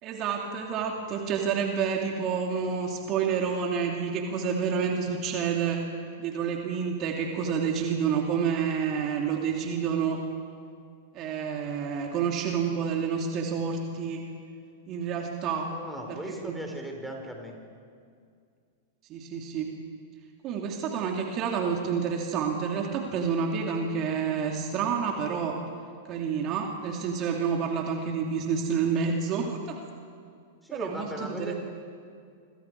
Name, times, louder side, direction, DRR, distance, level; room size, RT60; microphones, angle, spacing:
voice 1, 0.0-5.8 6.2-10.2 11.1-14.3 14.9-15.7 16.1-16.6 19.1-19.7 20.4-25.6 26.1-29.8 30.7-31.5, right 6 dB, 40° right, 1 dB, 2.9 m, -29 dB
voice 2, 15.7-17.6 30.6-31.5, equal, ahead, 1 dB, 4.3 m, -37 dB
28.0 x 26.5 x 4.8 m, 2.3 s
hypercardioid pair, 100°, 0 cm